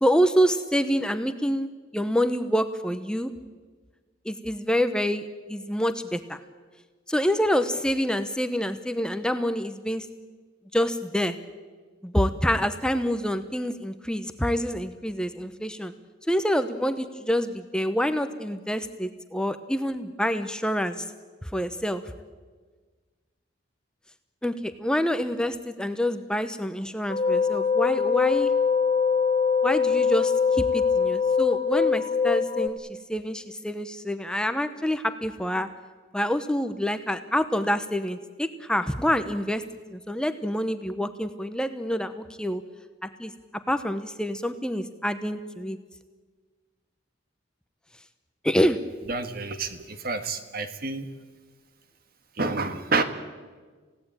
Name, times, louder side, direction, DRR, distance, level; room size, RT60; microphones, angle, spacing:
voice 1, 0.0-3.3 4.2-6.4 7.1-10.1 10.7-11.4 12.0-15.9 16.3-21.1 21.4-22.0 24.4-28.5 29.6-35.7 36.1-39.6 39.9-42.6 43.0-43.3 43.7-45.8 48.4-48.8, equal, 5° left, 9 dB, 0.8 m, -27 dB
Nepalese Singing Bowl, 27.1-32.7, left 6 dB, 30° left, 2.4 m, -23 dB
voice 2, 49.1-51.1 52.4-53.0, right 3 dB, 50° right, 9 dB, 1.7 m, -28 dB
27.5 x 17.0 x 8.9 m, 1.4 s
head